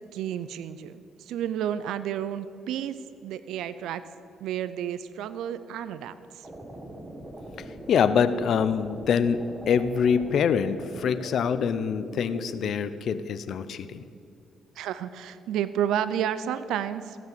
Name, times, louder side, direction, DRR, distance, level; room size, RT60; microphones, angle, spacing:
voice 1, 0.0-4.0 4.4-6.5 14.8-17.2, right 10 dB, 85° right, 13 dB, 0.4 m, -31 dB
sound 1, 6.4-12.7, right 1 dB, 20° right, 1.4 m, -41 dB
voice 2, 7.9-14.0, left 7 dB, 65° left, 13 dB, 0.6 m, -25 dB
14.5 x 6.2 x 7.4 m, 2.5 s
cardioid pair, 90°, 0 cm